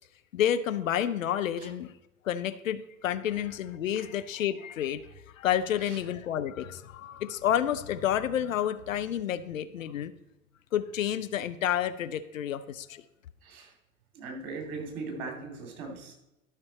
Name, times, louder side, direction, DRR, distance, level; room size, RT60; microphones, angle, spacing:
voice 1, 0.3-1.9 2.2-5.0 5.3-10.1 10.7-13.0, left 10 dB, 70° left, 13 dB, 0.6 m, -30 dB
voice 2, 14.1-16.1, right 3 dB, 50° right, 2 dB, 2.9 m, -38 dB
12.0 x 6.0 x 4.2 m, 0.95 s
figure-of-eight pair, 80°, 42 cm